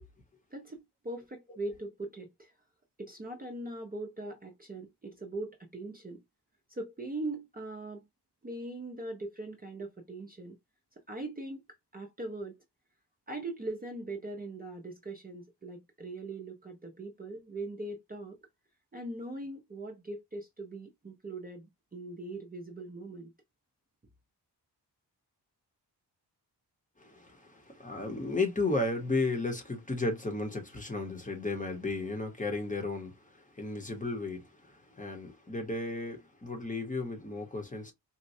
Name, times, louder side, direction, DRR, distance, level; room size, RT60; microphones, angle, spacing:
voice 1, 0.5-2.5 3.0-6.2 6.7-8.0 8.4-10.6 11.1-11.6 11.9-12.6 13.3-18.4 18.9-23.3, right 2 dB, 20° right, 0.5 m, -41 dB
voice 2, 27.0-37.9, left 2 dB, 20° left, 0.8 m, -34 dB
4.1 x 2.1 x 2.6 m
wide cardioid pair, 180°, 41 cm